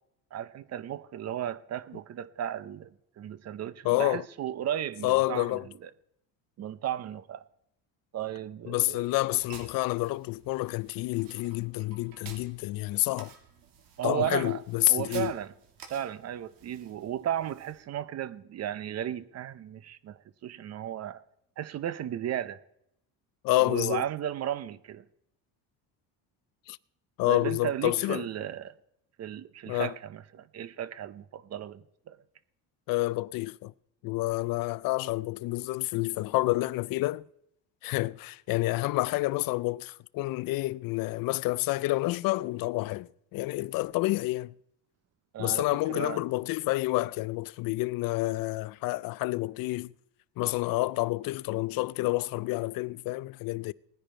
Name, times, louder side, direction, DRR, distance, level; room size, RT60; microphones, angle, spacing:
voice 1, 0.3-2.9 3.2-5.9 6.6-7.4 8.1-9.1 14.0-14.6 14.9-15.5 15.9-21.2 21.6-22.6 23.6-25.0 27.3-28.7 29.2-32.2 45.3-46.2, right 10 dB, 45° right, 0.7 m, -35 dB
voice 2, 3.8-4.2 5.0-5.7 8.7-13.3 14.0-15.3 23.4-24.0 26.7-26.8 27.2-28.3 29.7-29.9 32.9-33.7 34.0-37.3 37.8-44.5 45.4-49.9 50.4-53.7, left 20 dB, 65° left, 0.5 m, -29 dB
sound 1, 9.1-17.8, right 6 dB, 65° right, 2.7 m, -52 dB
18.5 x 10.0 x 4.4 m
cardioid pair, 120°, 37 cm